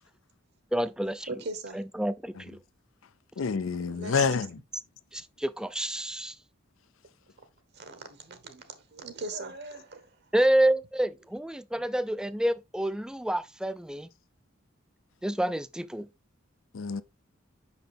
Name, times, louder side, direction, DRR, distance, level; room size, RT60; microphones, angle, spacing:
voice 1, 0.7-1.3 1.7-2.6 5.1-6.3 10.3-14.1 15.2-16.1, right 1 dB, 5° right, 0.4 m, -28 dB
voice 2, 1.3-1.8 3.8-4.5 7.7-10.1, right 3 dB, 55° right, 1.2 m, -39 dB
voice 3, 3.4-4.5 16.7-17.0, left 5 dB, 80° left, 0.5 m, -27 dB
5.8 x 5.6 x 3.4 m
head